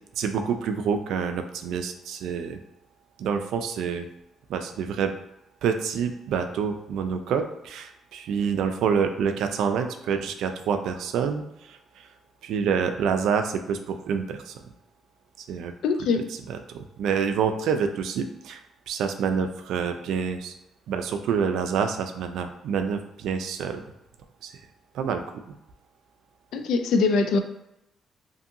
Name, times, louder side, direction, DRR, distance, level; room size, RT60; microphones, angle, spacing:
voice 1, 0.1-2.6 3.2-4.1 4.5-5.1 5.6-12.1 12.4-14.6 15.5-15.7 16.0-20.5 20.9-23.8 24.4-24.5 24.9-25.2, right 6 dB, 80° right, 7 dB, 0.3 m, -27 dB
voice 2, 15.8-16.2 26.5-27.4, left 4 dB, 80° left, 7 dB, 0.3 m, -22 dB
2.6 x 2.6 x 2.5 m, 0.86 s
cardioid pair, 90°, 0 cm